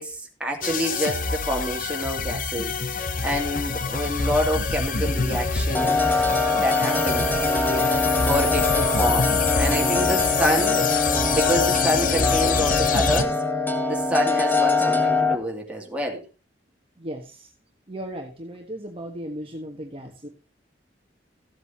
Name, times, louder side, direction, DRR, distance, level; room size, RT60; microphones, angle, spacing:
voice 1, 0.0-7.3 8.2-10.9 11.3-13.4 13.9-16.2, equal, 5° right, -1 dB, 2.5 m, -27 dB
sound 1, 0.6-13.2, left 5 dB, 50° left, 0.8 m, -26 dB
sound 2, 5.7-15.4, left 3 dB, 10° left, 1.3 m, -23 dB
voice 2, 17.0-17.5 17.9-20.3, equal, 30° right, 2 dB, 1.3 m, -36 dB
15.5 x 8.0 x 2.9 m, 0.32 s
head